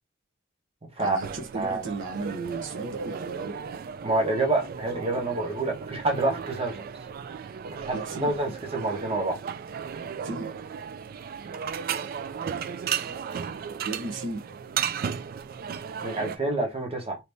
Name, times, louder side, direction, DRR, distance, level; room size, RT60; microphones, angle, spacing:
voice 1, 1.0-3.6 7.9-8.3 10.2-10.5 13.9-14.5, right 3 dB, 65° right, 0.8 m, -35 dB
sound 1, 1.2-16.4, right 7 dB, 50° right, 0.3 m, -35 dB
voice 2, 4.0-6.8 7.8-9.4 16.0-17.2, right 2 dB, 30° right, 1.0 m, -27 dB
2.9 x 2.6 x 3.4 m
head